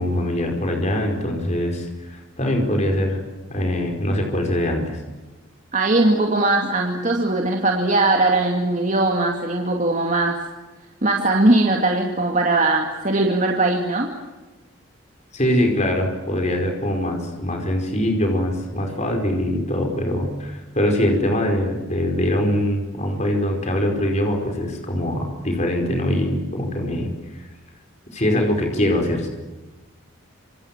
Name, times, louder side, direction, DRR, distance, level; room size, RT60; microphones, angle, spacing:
voice 1, 0.0-3.2 3.5-5.0 15.3-27.4 28.1-29.3, left 1 dB, 35° left, 3 dB, 5.0 m, -23 dB
voice 2, 5.7-10.4 11.0-14.1, right 2 dB, 35° right, 1 dB, 2.5 m, -20 dB
27.0 x 26.5 x 7.5 m, 1.2 s
head